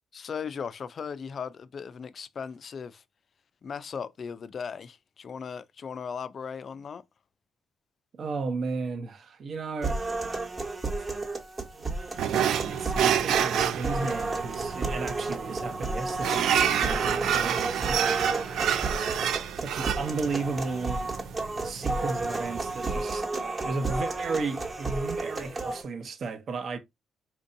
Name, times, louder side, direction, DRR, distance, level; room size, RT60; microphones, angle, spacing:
voice 1, 0.1-3.0 3.6-7.0, left 6 dB, 50° left, 0.3 m, -37 dB
voice 2, 8.2-10.0 11.0-11.1 12.7-18.9 19.5-21.1 21.6-23.3 23.6-26.8, right 4 dB, 55° right, 0.7 m, -34 dB
sound 1, 9.8-25.8, right 3 dB, 35° right, 1.0 m, -32 dB
sound 2, 12.2-23.0, right 9 dB, 75° right, 0.4 m, -29 dB
4.3 x 2.6 x 2.6 m
cardioid pair, 90°, 0 cm